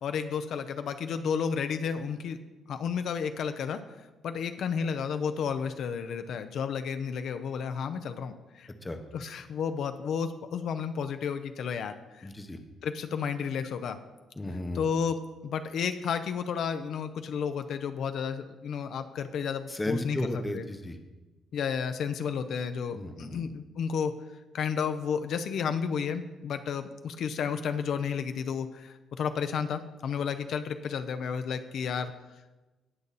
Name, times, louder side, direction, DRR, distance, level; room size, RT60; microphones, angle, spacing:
voice 1, 0.0-2.4 2.7-3.8 4.2-8.7 9.1-12.3 12.8-14.0 14.7-20.6 21.5-24.1 24.5-32.1, left 6 dB, 55° left, 9 dB, 0.6 m, -32 dB
voice 2, 12.2-12.6 14.4-14.8 19.7-21.0 22.9-23.5, left 1 dB, 10° left, 7 dB, 0.8 m, -34 dB
18.5 x 6.9 x 4.1 m, 1.1 s
cardioid pair, 165°, 0 cm